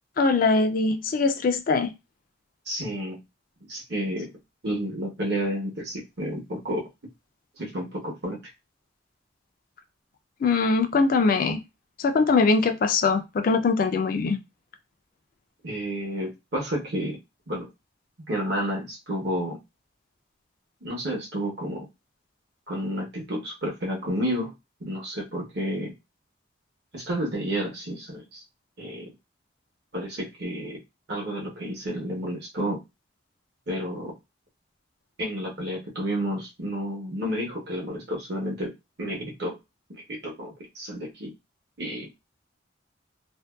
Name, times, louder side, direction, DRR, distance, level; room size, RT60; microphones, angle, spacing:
voice 1, 0.2-1.9 10.4-11.6 12.0-14.4, left 4 dB, 50° left, 0.3 m, -22 dB
voice 2, 2.7-3.2 3.7-4.3 4.6-6.8 7.6-8.4 15.6-17.2 17.5-17.7 18.3-19.6 20.8-21.9 22.7-24.5 24.8-25.9 26.9-28.4 28.8-29.1 29.9-30.8 31.1-32.8 33.7-34.2 35.2-38.7 39.0-39.6 39.9-41.3 41.8-42.1, equal, 60° right, 0.9 m, -31 dB
2.6 x 2.1 x 2.2 m
head